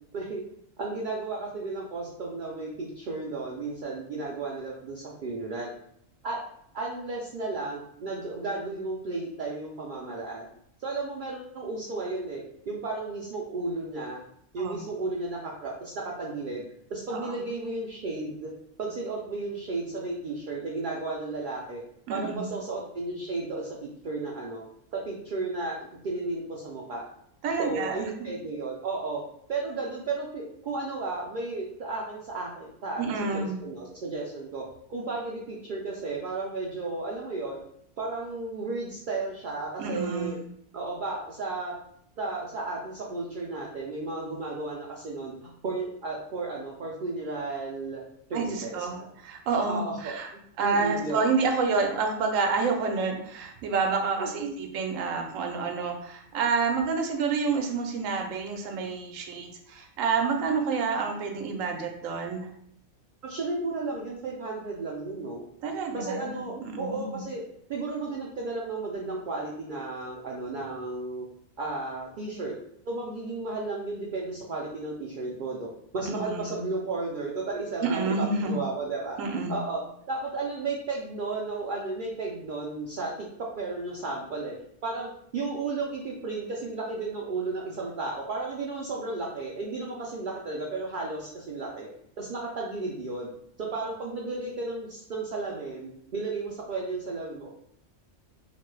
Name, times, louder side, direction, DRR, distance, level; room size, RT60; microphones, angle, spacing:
voice 1, 0.8-5.7 6.2-6.4 6.7-10.5 10.8-14.2 14.5-16.6 16.9-18.5 18.8-21.8 22.1-23.8 24.0-24.6 24.9-27.1 27.6-29.2 29.5-34.6 34.9-37.6 38.0-40.4 40.7-41.7 42.2-48.0 48.3-49.1 49.7-51.3 54.2-54.6 63.2-65.4 65.9-67.4 67.7-71.2 71.6-72.5 72.9-79.2 79.5-79.8 80.1-83.3 83.5-84.6 84.8-91.9 92.2-93.3 93.6-97.5, right 3 dB, 65° right, -3 dB, 0.5 m, -33 dB
voice 2, 22.1-22.5 27.4-28.1 33.0-33.6 39.8-40.4 48.3-49.0 49.2-50.3 50.6-62.5 65.6-66.4 66.7-67.2 76.0-76.6 77.8-78.6 79.2-79.6, right 4 dB, 85° right, 3 dB, 1.0 m, -28 dB
3.0 x 2.1 x 3.1 m, 0.70 s
omnidirectional pair, 1.3 m